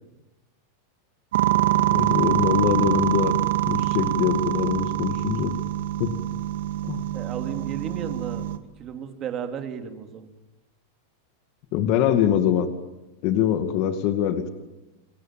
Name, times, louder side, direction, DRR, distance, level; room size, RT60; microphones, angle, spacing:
sound 1, 1.3-8.6, right 13 dB, 75° right, 2.2 m, -24 dB
voice 1, 1.8-3.3 3.6-5.6 6.0-6.1 6.8-7.0 11.7-12.7 13.2-14.5, left 10 dB, 45° left, 8 dB, 2.2 m, -23 dB
voice 2, 7.1-8.5 8.8-10.3, right 8 dB, 30° right, 6 dB, 3.2 m, -34 dB
29.5 x 23.5 x 7.6 m, 1.0 s
supercardioid pair, 145°, 0 cm